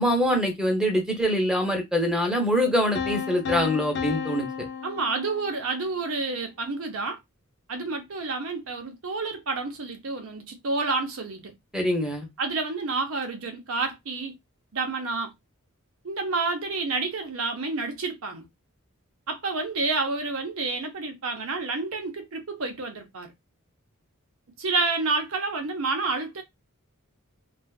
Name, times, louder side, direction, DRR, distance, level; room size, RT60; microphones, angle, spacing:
voice 1, 0.0-4.7 11.7-12.3, equal, 5° right, 0.7 m, -24 dB
sound 1, 3.0-5.9, left 6 dB, 55° left, 0.4 m, -33 dB
voice 2, 4.8-7.2 7.7-11.5 12.4-14.3 14.7-15.3 16.0-18.5 19.3-23.3 24.6-26.4, right 3 dB, 70° right, 0.7 m, -29 dB
2.5 x 2.4 x 2.3 m
head